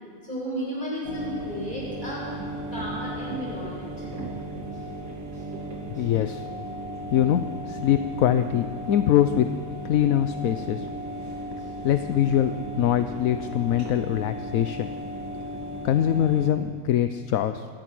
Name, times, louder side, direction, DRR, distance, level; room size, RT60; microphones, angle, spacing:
voice 1, 0.2-2.3 2.7-4.1 5.3-5.4 5.9-6.0, equal, 35° left, -5 dB, 8.4 m, -33 dB
sound 1, 1.0-16.5, right 1 dB, 70° right, 3.5 m, -36 dB
voice 2, 6.0-6.5 7.1-9.5 9.8-10.9 11.8-12.5 12.8-14.9 15.8-17.7, left 11 dB, 75° left, 10 dB, 1.1 m, -23 dB
25.0 x 18.0 x 6.1 m, 2.1 s
omnidirectional pair, 1.5 m